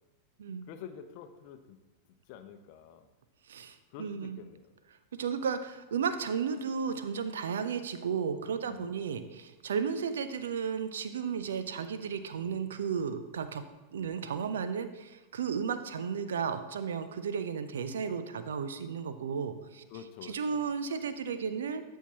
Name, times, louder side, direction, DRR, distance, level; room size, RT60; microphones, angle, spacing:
voice 1, 0.7-1.8 2.3-3.1 3.9-4.7 8.6-9.1 19.9-20.7, left 8 dB, 45° left, 9 dB, 0.7 m, -48 dB
voice 2, 3.5-4.4 5.1-13.6 13.9-19.8 20.2-21.8, right 6 dB, 65° right, 11 dB, 0.6 m, -34 dB
12.5 x 5.5 x 2.9 m, 1.1 s
figure-of-eight pair, 90°, 0 cm